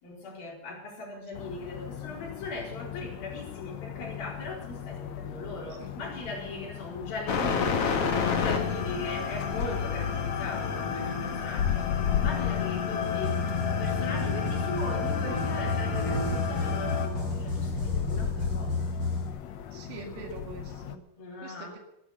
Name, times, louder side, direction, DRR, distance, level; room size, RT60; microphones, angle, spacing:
voice 1, 0.0-11.9 12.1-18.9 21.2-21.8, left 2 dB, 85° left, -2 dB, 6.2 m, -39 dB
sound 1, 1.3-21.0, left 9 dB, 65° left, 1.7 m, -36 dB
sound 2, 7.3-17.1, left 6 dB, 50° left, 2.2 m, -30 dB
sound 3, 13.0-19.3, left 2 dB, 25° right, 6.9 m, -32 dB
voice 2, 19.7-21.0 21.4-21.8, right 4 dB, 85° right, 1 dB, 3.9 m, -43 dB
13.0 x 11.5 x 8.3 m, 0.81 s
omnidirectional pair, 4.1 m